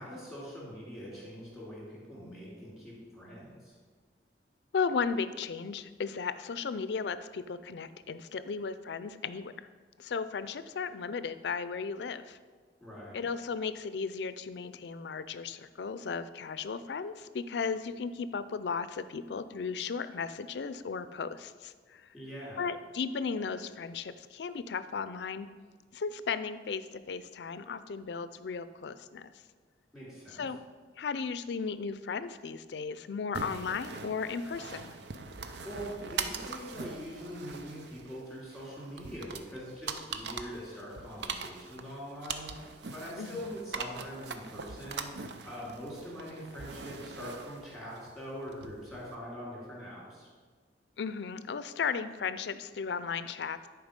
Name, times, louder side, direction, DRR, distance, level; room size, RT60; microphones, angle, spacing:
voice 1, 0.0-3.8 12.8-13.2 22.1-22.7 29.9-30.4 35.6-50.3, equal, ahead, -6 dB, 2.9 m, -43 dB
voice 2, 4.7-9.5 10.0-12.4 13.1-22.0 22.6-25.5 25.9-29.3 30.3-30.6 31.0-35.0 43.2-43.3 51.0-53.7, left 5 dB, 70° left, 13 dB, 0.4 m, -35 dB
sound 1, 33.3-49.1, right 5 dB, 75° right, 0.6 m, -42 dB
10.5 x 4.6 x 5.2 m, 1.5 s
head